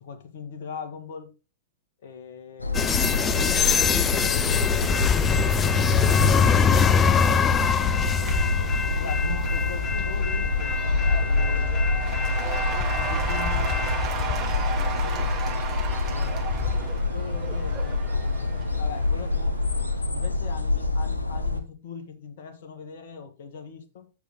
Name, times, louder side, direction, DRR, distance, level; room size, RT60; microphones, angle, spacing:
voice 1, 0.0-1.3 2.0-5.2 8.9-10.8 11.2-12.1 12.9-15.4 16.1-18.5 18.7-19.6 20.1-24.1, left 6 dB, 55° left, 1.7 m, -41 dB
sound 1, 2.6-21.6, left 3 dB, 90° left, 1.1 m, -27 dB
sound 2, 2.7-16.9, left 6 dB, 20° left, 0.5 m, -24 dB
Cheering / Applause / Crowd, 6.8-20.0, right 6 dB, 25° right, 2.3 m, -36 dB
8.1 x 6.6 x 3.8 m
figure-of-eight pair, 100°, 0 cm